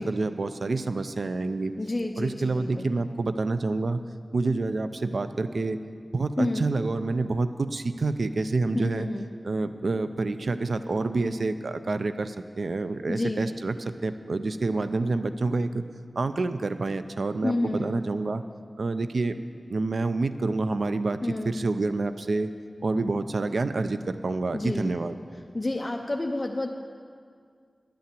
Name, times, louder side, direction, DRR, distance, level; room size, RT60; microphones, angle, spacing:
voice 1, 0.0-1.7 2.2-4.0 4.3-5.8 6.1-9.1 9.4-15.8 16.2-18.4 18.8-19.4 19.7-21.2 21.5-22.5 22.8-25.1, right 3 dB, 75° right, 11 dB, 0.5 m, -28 dB
voice 2, 1.8-2.9 6.4-6.6 8.7-9.3 13.1-13.5 17.4-18.0 21.2-21.6 24.5-24.9 25.5-26.7, left 2 dB, 30° left, 2 dB, 0.6 m, -29 dB
10.0 x 8.6 x 7.5 m, 2.1 s
wide cardioid pair, 75°, 0 cm